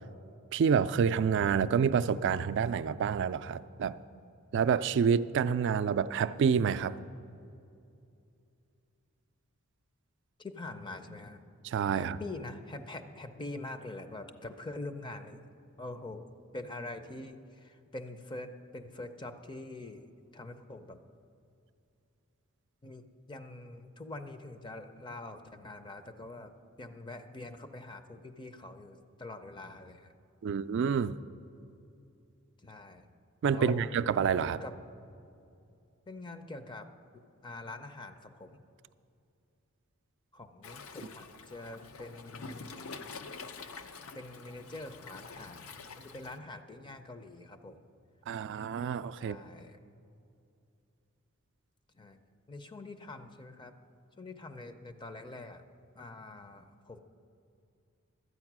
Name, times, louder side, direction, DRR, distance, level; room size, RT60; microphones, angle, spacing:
voice 1, 0.5-4.0 4.5-7.0 11.6-12.2 30.4-31.2 33.4-34.6 48.3-49.4, right 6 dB, 60° right, 0.3 m, -28 dB
voice 2, 10.4-11.4 12.0-15.4 15.8-16.3 16.5-20.1 20.3-21.0 22.8-30.1 32.6-33.1 33.5-33.9 34.6-34.7 36.1-36.9 37.1-38.6 40.3-42.9 44.1-45.7 46.0-47.8 49.2-49.8 51.9-52.2 52.5-53.8 54.2-55.6 55.9-57.0, left 2 dB, 20° left, 0.5 m, -44 dB
Waves surf, 40.6-46.4, left 4 dB, 75° left, 0.6 m, -46 dB
12.5 x 8.7 x 6.0 m
head